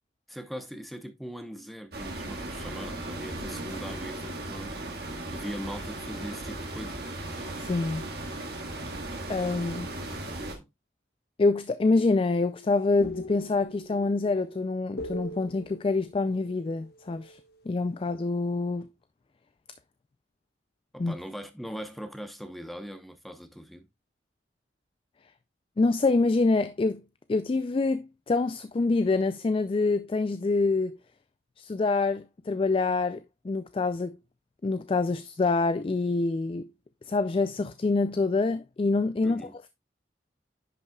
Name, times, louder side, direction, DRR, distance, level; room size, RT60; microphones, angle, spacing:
voice 1, 0.3-4.8 5.1-7.1 10.2-10.7 20.9-23.9 39.2-39.6, equal, ahead, 0.8 m, -40 dB
sound 1, 1.9-10.6, right 2 dB, 55° right, 1.7 m, -37 dB
voice 2, 7.6-8.5 9.3-9.9 11.4-17.4 17.7-18.9 21.0-21.1 25.8-27.0 27.3-31.0 31.6-34.2 34.6-36.7 37.1-39.4, left 3 dB, 30° left, 0.3 m, -26 dB
sound 2, 11.9-17.6, left 1 dB, 55° left, 1.1 m, -42 dB
10.5 x 5.5 x 2.3 m
head